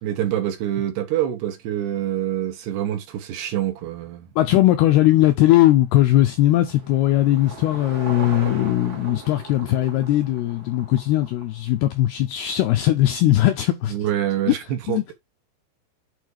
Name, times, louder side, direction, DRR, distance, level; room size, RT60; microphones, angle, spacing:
voice 1, 0.0-4.3 13.9-15.1, right 11 dB, 70° right, 3.1 m, -26 dB
voice 2, 4.4-13.9 14.5-14.6 14.9-15.0, left 14 dB, 80° left, 2.3 m, -19 dB
Car passing by / Engine, 5.6-12.1, right 3 dB, 55° right, 1.0 m, -39 dB
8.3 x 4.2 x 4.7 m
omnidirectional pair, 5.4 m